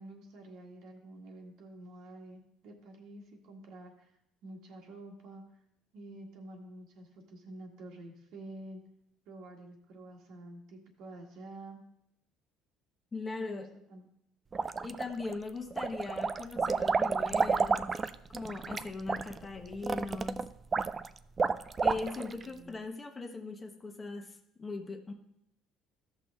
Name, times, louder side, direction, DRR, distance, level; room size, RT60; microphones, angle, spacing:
voice 1, 0.0-4.1 4.4-5.4 5.9-8.8 9.3-11.8 13.4-13.6 13.9-14.1 22.4-22.8, right 1 dB, 65° right, 2 dB, 1.7 m, -49 dB
voice 2, 13.1-13.7 14.8-17.9 18.3-20.5 21.8-24.3 24.6-25.1, left 3 dB, 25° left, 4 dB, 1.1 m, -39 dB
sound 1, 14.5-15.3 15.7-22.4, right 4 dB, 30° right, 0.4 m, -31 dB
13.5 x 5.9 x 3.5 m, 0.78 s
supercardioid pair, 100°, 0 cm